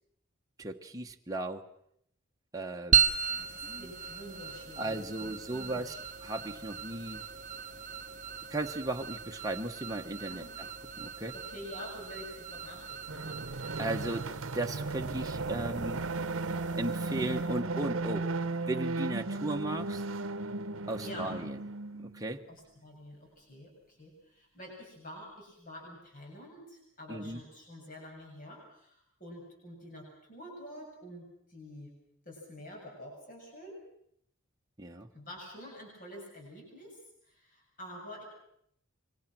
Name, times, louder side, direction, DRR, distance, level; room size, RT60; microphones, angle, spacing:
voice 1, 0.6-1.7 2.5-3.0 3.3-3.9 4.8-5.9 6.2-7.2 8.5-10.7 11.0-11.3 13.8-14.3 14.5-16.0 16.8-18.3 18.7-20.0 20.9-21.6 22.1-22.4 27.1-27.4 34.8-35.1, right 2 dB, 15° right, 2 dB, 1.2 m, -36 dB
sound 1, 2.9-17.6, right 7 dB, 40° right, 1.0 m, -36 dB
voice 2, 3.4-6.0 10.3-10.5 11.3-13.4 21.0-21.3 22.5-31.9 32.2-33.8 35.1-37.0 37.3-38.2, equal, 40° left, -1 dB, 7.6 m, -48 dB
sound 2, 13.1-22.3, right 3 dB, 70° right, 1.0 m, -35 dB
27.0 x 24.0 x 6.1 m, 0.70 s
head